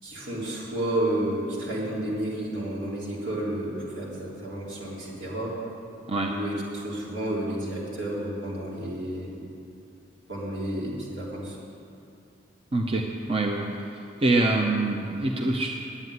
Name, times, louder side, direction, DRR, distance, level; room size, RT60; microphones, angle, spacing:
voice 1, 0.0-5.6 6.2-9.4 10.3-11.6, right 1 dB, 75° right, -6 dB, 3.6 m, -31 dB
voice 2, 12.7-13.7 14.2-15.7, right 2 dB, 30° right, 1 dB, 0.7 m, -24 dB
9.6 x 8.4 x 9.4 m, 2.7 s
head